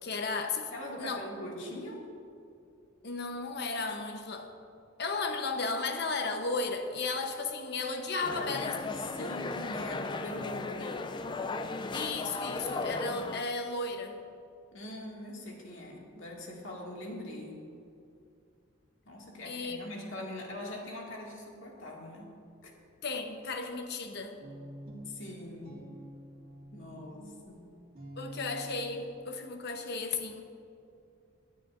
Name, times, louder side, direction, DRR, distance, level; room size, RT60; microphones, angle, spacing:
voice 1, 0.0-0.7 1.0-1.2 3.0-4.5 5.0-8.8 9.2-9.3 11.9-14.2 19.5-19.8 23.0-24.4 28.2-30.4, left 3 dB, 55° left, 5 dB, 0.9 m, -34 dB
voice 2, 0.7-2.0 8.3-11.0 14.7-17.6 19.1-22.3 22.6-22.7 25.0-25.8 26.7-27.7, left 1 dB, 80° left, -2 dB, 2.1 m, -42 dB
sound 1, 8.2-13.4, left 3 dB, 25° left, 0.4 m, -36 dB
Guitar, 24.4-29.6, equal, 50° right, 2.3 m, -48 dB
18.0 x 10.0 x 2.6 m, 2.5 s
head